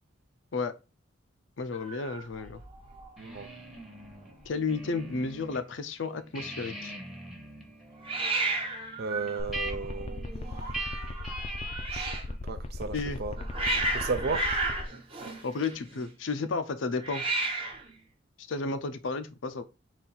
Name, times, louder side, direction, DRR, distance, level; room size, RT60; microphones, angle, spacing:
voice 1, 1.6-2.6 4.5-6.9 12.9-13.2 15.4-17.3 18.5-19.6, left 4 dB, 75° left, 0.6 m, -32 dB
Hiss, 1.7-3.1 3.3-3.8 4.1-4.2 4.3-5.0 8.0-12.3 13.1-16.0 17.0-17.9, right 2 dB, 30° right, 0.9 m, -34 dB
sound 1, 3.2-5.6 6.0-12.1, right 1 dB, ahead, 0.8 m, -42 dB
voice 2, 9.0-10.3 11.9-12.1 12.4-13.4 13.9-14.5, right 4 dB, 55° right, 0.5 m, -34 dB
sound 2, 9.4-14.8, left 2 dB, 30° left, 0.4 m, -37 dB
4.2 x 2.5 x 4.0 m
head